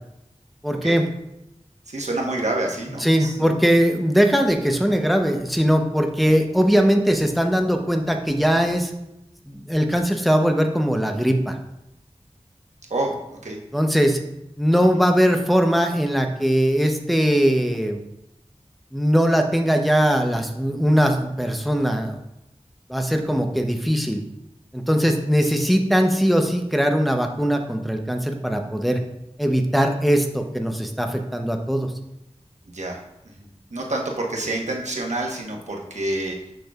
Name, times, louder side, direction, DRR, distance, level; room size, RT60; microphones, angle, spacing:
voice 1, 0.6-1.0 3.0-8.9 9.5-11.6 13.7-14.2 14.6-18.0 18.9-22.2 22.9-24.2 24.7-29.0 29.4-31.9, equal, ahead, 4 dB, 0.7 m, -20 dB
voice 2, 1.9-3.4 12.9-13.6 14.8-15.0 25.5-25.6 32.7-36.5, right 2 dB, 80° right, 0 dB, 1.1 m, -28 dB
6.5 x 6.1 x 2.4 m, 0.87 s
wide cardioid pair, 60°, 12 cm